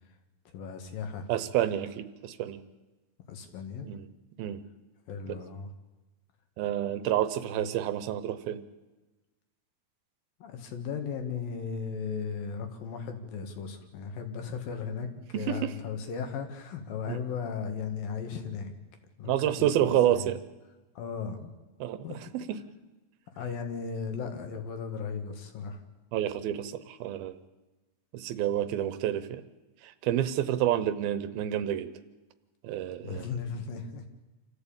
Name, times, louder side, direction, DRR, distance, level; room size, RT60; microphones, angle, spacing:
voice 1, 0.5-1.3 3.3-3.9 5.1-5.7 7.6-7.7 10.4-18.7 19.2-20.3 20.9-21.5 22.0-22.2 23.3-25.8 33.0-34.1, left 6 dB, 65° left, 6 dB, 3.5 m, -36 dB
voice 2, 1.3-2.6 3.8-4.1 4.4-4.6 6.6-8.6 15.3-15.7 17.1-17.2 19.2-20.4 21.8-22.0 22.3-22.6 26.1-27.3 28.1-29.4 29.8-31.9 32.6-33.3, right 11 dB, 75° right, 13 dB, 2.6 m, -29 dB
27.0 x 14.5 x 8.8 m, 1.2 s
omnidirectional pair, 4.5 m